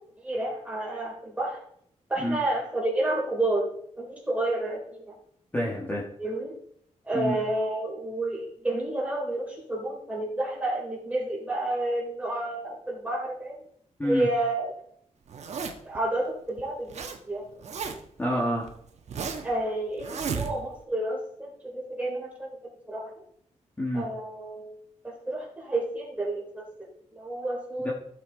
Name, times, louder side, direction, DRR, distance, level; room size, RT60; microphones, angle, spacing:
voice 1, 0.2-1.6 2.1-3.7 4.0-5.1 6.2-6.5 7.0-13.5 14.0-14.7 15.8-17.4 19.4-23.0 23.9-24.7 25.0-27.9, right 1 dB, 10° right, -2 dB, 3.4 m, -30 dB
voice 2, 5.5-6.0 7.1-7.3 14.0-14.3 18.2-18.7 23.8-24.0 27.8-27.9, equal, 15° left, -3 dB, 1.7 m, -27 dB
Zipper (clothing), 15.3-16.0 16.6-17.2 17.4-18.2 18.7-19.5 20.0-20.8, right 5 dB, 65° right, 1.3 m, -34 dB
15.0 x 6.5 x 3.9 m, 0.68 s
wide cardioid pair, 170°, 12 cm